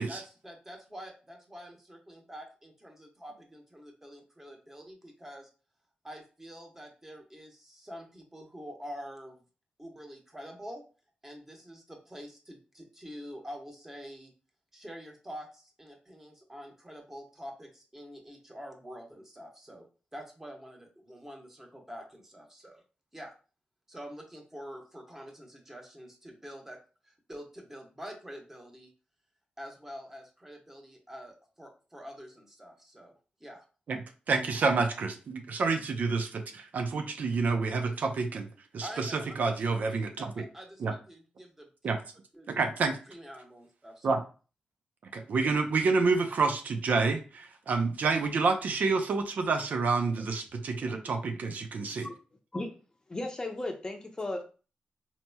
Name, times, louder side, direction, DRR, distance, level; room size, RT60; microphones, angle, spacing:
voice 1, 0.1-5.5 6.0-9.4 9.8-10.8 11.2-14.3 14.7-19.9 20.1-22.8 23.1-23.3 23.9-26.8 27.0-28.9 29.6-33.1 33.4-33.6 38.8-41.7 42.3-42.5 43.1-44.2, equal, 15° right, 2 dB, 1.0 m, -46 dB
voice 2, 34.3-38.5 38.7-40.4 40.8-40.9 41.8-42.0 42.5-43.0 44.0-44.2 45.1-52.1, right 4 dB, 65° right, 5 dB, 0.5 m, -28 dB
voice 3, 53.1-54.4, left 2 dB, 25° left, 3 dB, 0.7 m, -35 dB
4.2 x 2.9 x 2.2 m, 0.35 s
cardioid pair, 95°, 3 cm